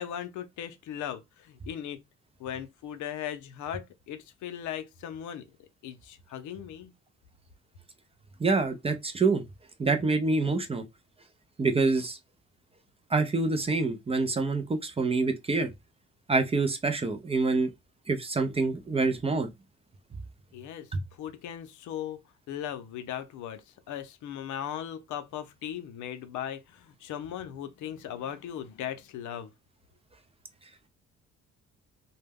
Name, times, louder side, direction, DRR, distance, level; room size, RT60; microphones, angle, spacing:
voice 1, 0.0-2.0 2.4-5.5 5.8-6.9 20.5-29.5, left 10 dB, 80° left, 0.5 m, -38 dB
voice 2, 8.4-9.4 9.8-10.8 11.6-12.2 13.1-15.7 16.3-17.7 18.1-19.5, right 3 dB, 20° right, 0.4 m, -26 dB
2.2 x 2.0 x 3.4 m
cardioid pair, 90°, 30 cm